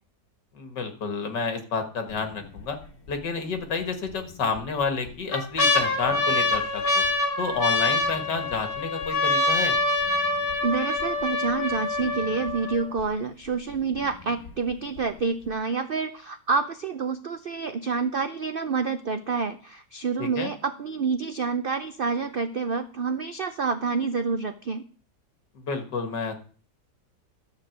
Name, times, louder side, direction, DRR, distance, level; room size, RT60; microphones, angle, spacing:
voice 1, 0.5-2.8 3.1-7.0 7.4-9.7 20.2-20.5 25.6-26.3, left 4 dB, 80° left, 6 dB, 2.3 m, -30 dB
sound 1, 2.1-2.6 3.1-3.2 4.1-4.6 5.1-13.0 13.7-13.8 14.0-14.5 15.0-15.1, left 2 dB, 55° left, 2.6 m, -25 dB
voice 2, 10.6-24.8, right 4 dB, 90° right, 9 dB, 0.4 m, -28 dB
12.0 x 5.6 x 7.9 m, 0.43 s
omnidirectional pair, 1.9 m